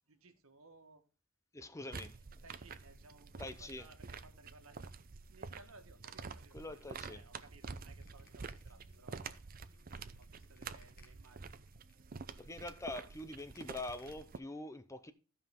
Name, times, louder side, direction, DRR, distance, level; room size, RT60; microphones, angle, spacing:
voice 1, 0.1-1.0 2.4-5.0 5.3-9.4 10.2-11.6, right 3 dB, 70° right, 1.5 m, -61 dB
voice 2, 1.5-2.2 3.4-3.9 6.5-7.2 12.4-15.1, left 2 dB, 15° left, 0.6 m, -44 dB
sound 1, 1.9-14.4, right 4 dB, 40° right, 0.6 m, -49 dB
sound 2, 6.1-14.1, left 3 dB, 45° left, 2.2 m, -66 dB
15.0 x 5.6 x 3.6 m
head